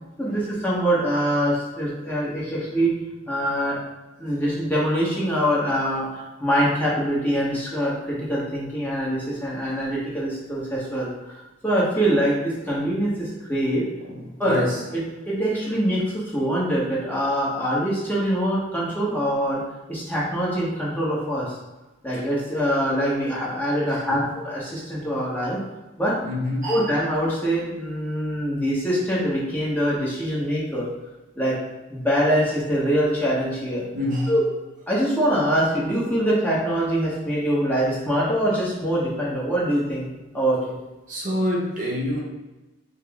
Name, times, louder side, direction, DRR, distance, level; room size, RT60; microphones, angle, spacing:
voice 1, 0.2-2.9 3.3-3.8 4.2-13.8 14.4-14.6 14.9-19.6 19.9-21.6 22.0-25.6 26.0-26.2 26.6-30.9 31.3-31.5 31.9-33.9 34.3-34.4 34.9-40.1 40.3-40.7, equal, 10° left, -7 dB, 0.9 m, -24 dB
voice 2, 14.4-14.8 23.9-24.3 26.2-26.9 33.9-34.3 41.1-42.2, left 1 dB, 40° right, -3 dB, 0.7 m, -26 dB
5.1 x 2.0 x 3.4 m, 1.1 s
head